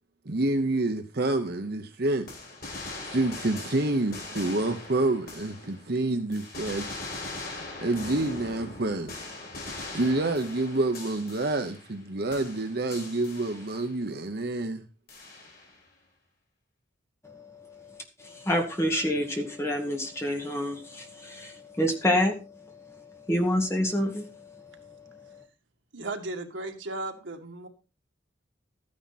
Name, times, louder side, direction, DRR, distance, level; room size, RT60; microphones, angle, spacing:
voice 1, 0.3-2.3 3.1-6.9 7.2-9.1 9.9-14.8, right 2 dB, 55° right, 1.0 m, -28 dB
sound 1, 2.3-6.0 6.3-12.0 12.3-14.0 15.1-15.8, left 2 dB, 50° left, 5.2 m, -41 dB
voice 2, 17.2-17.9 18.2-22.4 22.9-23.0 23.3-24.3 24.8-24.9, equal, 15° left, 2.1 m, -28 dB
voice 3, 25.9-27.7, right 2 dB, 80° right, 2.1 m, -35 dB
13.0 x 9.9 x 4.2 m
head